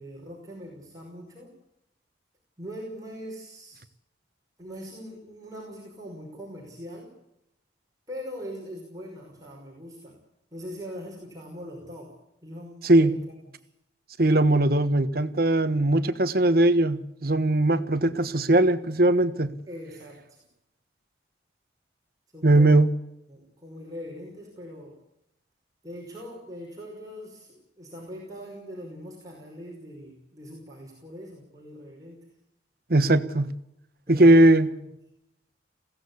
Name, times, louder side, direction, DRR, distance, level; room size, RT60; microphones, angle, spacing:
voice 1, 0.0-1.5 2.6-3.8 4.6-7.1 8.1-10.1 10.5-12.1 12.4-13.7 19.7-20.4 22.3-22.8 23.3-24.9 25.8-32.2 34.1-34.8, equal, 20° right, -3 dB, 5.5 m, -41 dB
voice 2, 12.8-13.1 14.2-19.5 22.4-22.9 32.9-33.5 34.1-34.7, right 1 dB, 50° right, 11 dB, 1.3 m, -19 dB
21.5 x 17.0 x 8.4 m, 0.81 s
head